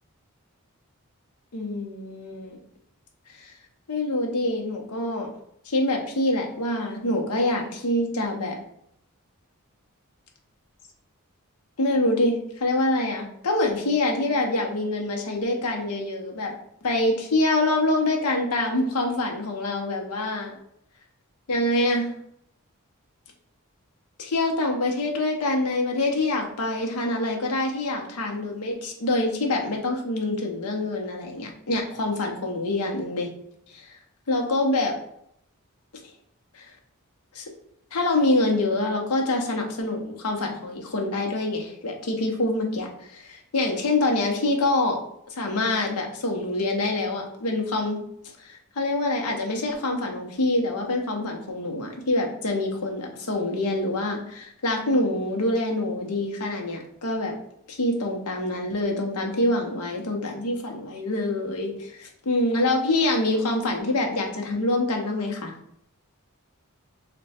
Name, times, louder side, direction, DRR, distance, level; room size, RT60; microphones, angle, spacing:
voice 1, 1.5-2.6 3.4-3.5 3.9-5.3 5.6-8.6 11.8-16.5 16.8-20.5 21.5-22.1 24.2-33.3 33.7-34.0 34.3-34.9 36.5-36.7 37.3-37.5 37.9-45.0 45.3-48.0 48.4-57.3 57.7-65.5, left 2 dB, 85° left, 2 dB, 0.8 m, -25 dB
3.3 x 2.2 x 4.1 m, 0.72 s
head